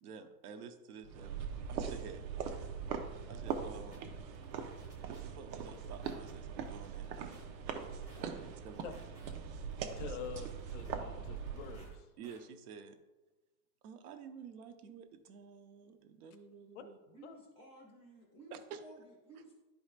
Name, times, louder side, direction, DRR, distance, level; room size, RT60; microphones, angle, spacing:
voice 1, 0.0-1.3 1.7-2.2 3.3-4.0 5.1-7.4 8.1-9.0 10.0-10.1 12.2-13.0 13.8-17.0 18.5-18.8, right 6 dB, 60° right, 8 dB, 0.8 m, -50 dB
sound 1, 1.0-11.9, right 6 dB, 90° right, 1.0 m, -41 dB
sound 2, 3.5-3.6 3.9-4.0 4.3-5.2 5.5-6.3 6.7-7.4 7.8-8.2 8.7-9.3 9.7-10.9 11.3-11.9 12.2-12.4, right 1 dB, 5° right, 0.8 m, -61 dB
voice 2, 10.0-12.1 16.7-16.8 17.2-17.3, left 7 dB, 45° left, 7 dB, 0.6 m, -46 dB
voice 3, 17.1-19.6, right 1 dB, 20° right, -9 dB, 0.3 m, -56 dB
11.5 x 5.0 x 2.4 m, 1.1 s
supercardioid pair, 175°, 50 cm